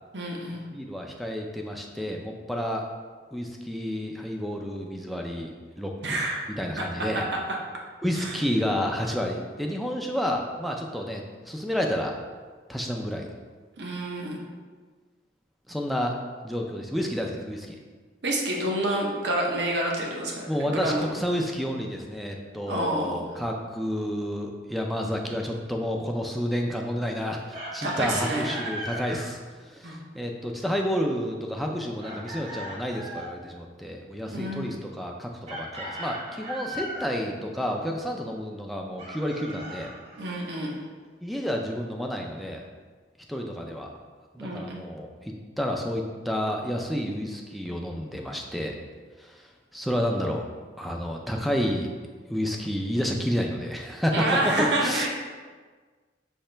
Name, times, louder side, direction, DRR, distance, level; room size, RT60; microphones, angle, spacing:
voice 1, 0.1-0.6 6.0-6.4 6.8-7.2 8.1-8.4 13.8-14.4 18.2-21.0 22.7-23.3 27.8-29.2 29.8-30.0 34.3-34.7 40.2-40.8 44.4-44.9 54.1-55.1, right 1 dB, 75° right, -1 dB, 0.8 m, -29 dB
voice 2, 0.7-2.8 3.3-6.2 6.5-7.3 8.0-12.1 12.7-13.3 15.7-16.2 16.4-17.8 20.5-39.9 41.2-42.6 43.3-43.9 44.3-48.7 49.2-50.5 50.8-51.9 52.3-55.1, equal, ahead, 0 dB, 0.4 m, -30 dB
Chicken rooster, 27.5-29.0 32.0-33.4 35.5-37.1 39.0-40.5, right 1 dB, 35° right, 0.8 m, -37 dB
5.5 x 2.9 x 3.3 m, 1.5 s
head